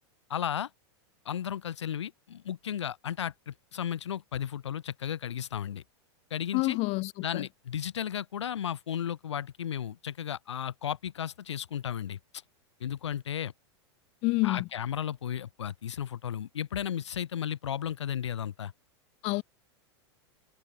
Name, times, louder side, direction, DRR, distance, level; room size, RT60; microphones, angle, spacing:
voice 1, 0.3-0.7 1.2-5.8 6.3-6.8 7.2-12.2 12.8-13.5 14.4-18.7, left 9 dB, 90° left, 1.7 m, -34 dB
voice 2, 6.5-7.5 14.2-14.7 19.2-19.4, left 24 dB, 45° left, 1.8 m, -28 dB
hypercardioid pair, 115°, 14 cm